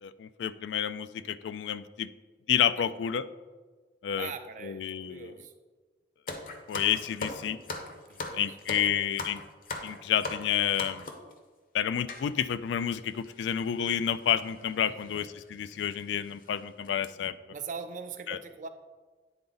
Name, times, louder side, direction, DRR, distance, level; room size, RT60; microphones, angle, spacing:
voice 1, 0.0-2.1 2.5-3.3 4.0-4.3 4.6-5.3 6.7-7.6 8.3-9.4 9.8-11.1 11.7-17.4 18.3-18.4, left 9 dB, 80° left, 14 dB, 0.3 m, -30 dB
voice 2, 4.2-5.5 8.1-8.6 14.8-15.2 17.5-18.7, right 5 dB, 45° right, 9 dB, 0.4 m, -42 dB
sound 1, 6.3-11.3 12.1-12.3 13.0-13.1 13.2-13.4 14.4-14.6 15.1-15.2 15.7-15.8 16.2-16.5 16.8-17.1, left 2 dB, 50° left, 0.7 m, -38 dB
9.4 x 3.8 x 3.9 m, 1.4 s
head